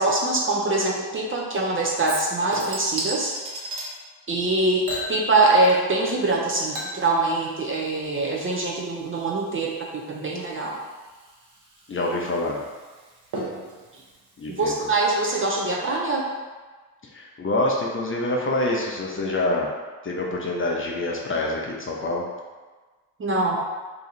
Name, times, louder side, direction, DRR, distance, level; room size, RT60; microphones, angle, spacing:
voice 1, 0.0-3.4 4.3-10.8 14.5-16.3 23.2-23.6, right 2 dB, 25° right, -2 dB, 0.6 m, -23 dB
Chink clink / Liquid, 2.0-3.9 4.8-6.0 6.3-15.3 15.6-15.7, right 1 dB, 50° right, 1.2 m, -37 dB
voice 2, 11.9-12.6 14.4-14.7 17.1-19.7 20.0-22.2, left 2 dB, 25° left, -2 dB, 0.7 m, -26 dB
2.9 x 2.4 x 4.2 m, 1.3 s
hypercardioid pair, 55°, 48 cm